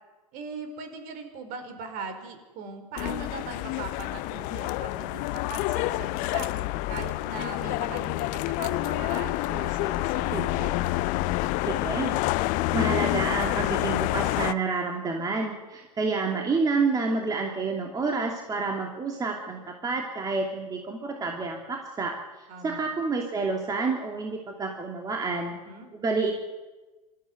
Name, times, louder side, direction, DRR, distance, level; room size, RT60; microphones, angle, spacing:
voice 1, 0.3-6.5 6.9-10.7 22.5-22.9 25.5-25.9, right 4 dB, 40° right, 8 dB, 4.7 m, -40 dB
sound 1, 3.0-14.5, left 18 dB, 40° left, 0.7 m, -28 dB
voice 2, 11.7-12.2 12.7-25.5 25.9-26.3, right 4 dB, 20° right, 2 dB, 2.7 m, -29 dB
25.5 x 14.0 x 9.4 m, 1.2 s
figure-of-eight pair, 95°, 21 cm